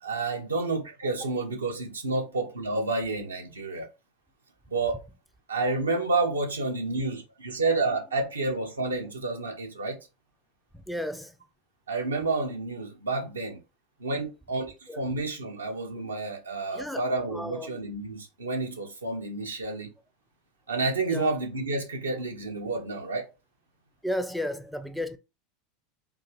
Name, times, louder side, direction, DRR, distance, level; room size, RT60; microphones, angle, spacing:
voice 1, 0.0-3.9 4.7-5.0 5.5-10.0 11.9-13.6 14.0-19.9 20.7-23.3, right 3 dB, 85° right, 0.8 m, -30 dB
voice 2, 10.9-11.3 14.9-15.0 16.7-17.8 21.1-21.3 24.0-25.2, left 1 dB, ahead, 0.3 m, -33 dB
3.7 x 2.5 x 3.0 m
figure-of-eight pair, 80°, 0 cm